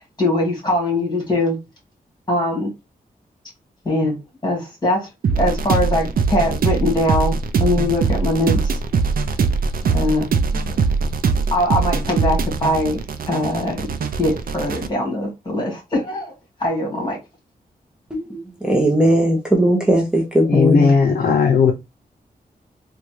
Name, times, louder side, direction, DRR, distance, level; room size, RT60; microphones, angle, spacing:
voice 1, 0.2-1.6 2.3-2.7 3.9-4.2 4.4-7.3 7.6-8.8 9.9-10.9 11.5-13.0 13.3-13.9 14.2-16.3 16.6-17.2, left 1 dB, 25° left, 2.1 m, -22 dB
sound 1, 5.2-14.9, right 5 dB, 65° right, 0.4 m, -21 dB
voice 2, 18.6-20.9, right 1 dB, 5° right, 0.8 m, -17 dB
voice 3, 20.5-21.7, left 5 dB, 70° left, 0.6 m, -15 dB
3.9 x 2.3 x 3.2 m
wide cardioid pair, 125°, 16 cm